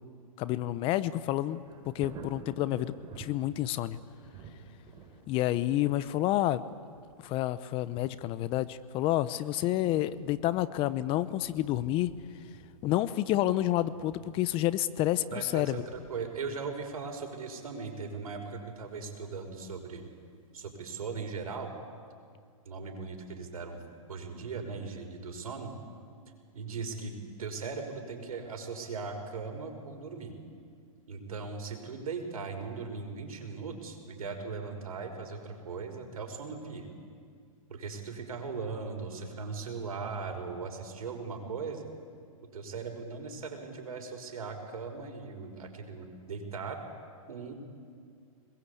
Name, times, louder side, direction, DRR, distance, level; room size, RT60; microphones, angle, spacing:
voice 1, 0.4-4.0 5.3-6.6 7.2-12.1 12.8-15.8, left 14 dB, 30° left, 15 dB, 0.8 m, -29 dB
Thunder, 1.3-20.1 20.6-20.7, right 4 dB, 25° right, 3.9 m, -53 dB
voice 2, 15.3-20.0 20.5-21.7 22.7-23.8 24.1-25.7 26.5-30.4 31.1-36.9 37.7-41.9 42.5-46.8 47.3-47.5, right 4 dB, 80° right, 5 dB, 5.6 m, -39 dB
26.0 x 21.5 x 8.5 m, 2.2 s
hypercardioid pair, 135°, 19 cm